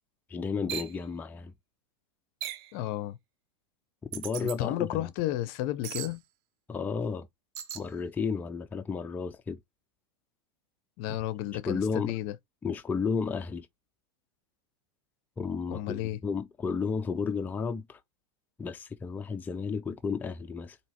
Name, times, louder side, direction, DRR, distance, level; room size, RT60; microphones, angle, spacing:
voice 1, 0.3-1.5 4.0-5.1 6.7-7.3 7.7-9.6 11.6-12.2 12.6-13.7 15.4-18.0 18.6-20.8, left 5 dB, 10° left, 0.4 m, -32 dB
sound 1, 0.7-0.9 2.4-2.7 4.1-4.6 5.8-6.1 7.5-7.9, right 11 dB, 65° right, 0.9 m, -37 dB
voice 2, 2.7-3.2 4.4-6.2 11.0-12.3 15.7-16.2, left 14 dB, 55° left, 0.6 m, -32 dB
4.4 x 2.8 x 2.8 m
supercardioid pair, 130°, 15 cm